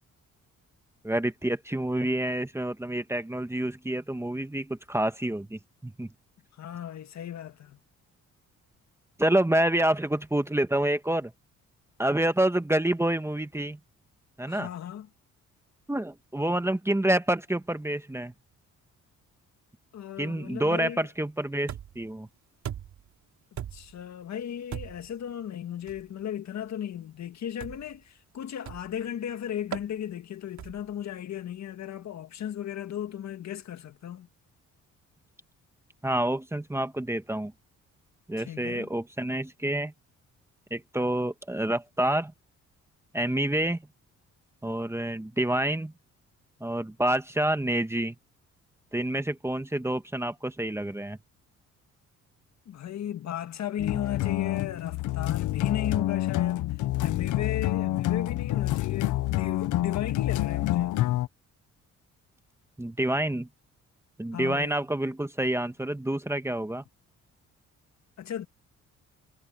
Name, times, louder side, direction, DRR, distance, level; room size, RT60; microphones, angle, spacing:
voice 1, 1.0-6.1 9.2-11.3 12.0-13.8 14.4-14.7 15.9-18.3 20.2-22.3 36.0-37.5 38.3-39.9 40.7-42.3 43.1-43.8 44.6-45.9 46.6-48.1 48.9-51.2 62.8-63.5 64.2-66.8, right 1 dB, 10° right, 1.4 m, -28 dB
voice 2, 6.5-7.8 14.5-15.1 19.9-21.1 23.7-34.3 38.4-38.9 52.7-56.6 57.0-61.1 64.3-64.7 68.2-68.5, left 10 dB, 65° left, 1.9 m, -35 dB
sound 1, 21.7-22.1 22.6-23.1 23.6-24.0 24.7-25.1 25.9-26.1 27.6-28.0 28.7-29.0 29.7-29.9 30.6-30.9, right 10 dB, 70° right, 3.4 m, -39 dB
sound 2, 53.8-61.3, left 15 dB, 85° left, 0.9 m, -27 dB
cardioid pair, 90°, 30 cm